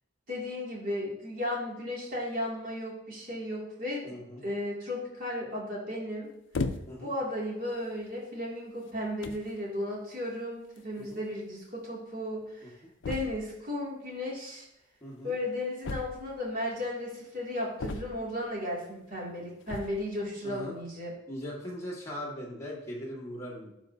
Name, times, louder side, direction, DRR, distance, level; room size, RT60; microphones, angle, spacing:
voice 1, 0.3-4.0 4.4-6.3 7.0-12.8 13.1-14.6 15.2-21.1, left 1 dB, 45° right, -4 dB, 2.5 m, -35 dB
voice 2, 4.0-4.4 6.9-7.1 11.0-11.2 12.6-12.7 15.0-15.3 20.4-20.8 21.3-23.7, equal, 15° left, -4 dB, 1.7 m, -40 dB
sound 1, 6.5-7.1 7.9-8.1 8.9-9.0 9.2-9.5 10.8-10.9 11.1-11.2 11.4-11.5 13.0-13.6 15.8-16.5 17.8-18.4 19.6-20.1, left 3 dB, 65° left, 0.5 m, -36 dB
11.5 x 4.6 x 2.7 m, 0.85 s
head